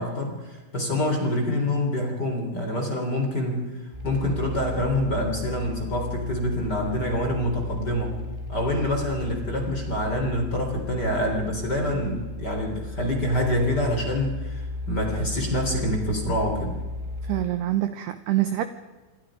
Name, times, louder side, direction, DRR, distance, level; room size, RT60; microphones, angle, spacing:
voice 1, 0.0-8.2 8.5-16.8, left 1 dB, 25° left, 2 dB, 3.1 m, -26 dB
sound 1, 3.9-17.4, left 2 dB, 10° right, 2.9 m, -35 dB
voice 2, 11.9-12.2 17.2-18.6, right 13 dB, 80° right, 10 dB, 2.4 m, -26 dB
27.0 x 25.0 x 5.0 m, 1.2 s
omnidirectional pair, 5.9 m